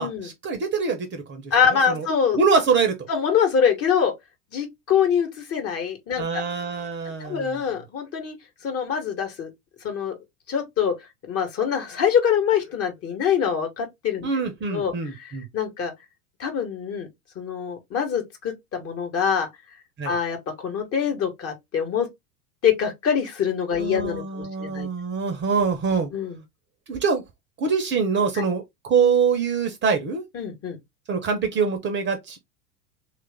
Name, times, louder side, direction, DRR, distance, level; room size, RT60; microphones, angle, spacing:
voice 1, 0.0-2.1 2.4-3.0 6.2-7.6 14.2-15.5 20.0-20.2 23.8-26.1 26.9-27.2 27.6-30.2 31.1-32.4, right 5 dB, 25° right, 0.7 m, -24 dB
voice 2, 1.5-2.4 3.1-4.1 4.5-6.4 7.2-8.4 8.6-9.5 9.8-10.1 10.5-10.9 11.3-14.3 14.7-14.9 15.2-15.9 16.4-17.1 17.3-19.5 20.0-22.1 22.6-24.9 26.1-26.4 28.3-28.4 30.3-30.8, left 7 dB, 30° left, 1.2 m, -24 dB
3.1 x 2.5 x 3.4 m
figure-of-eight pair, 85°, 45 cm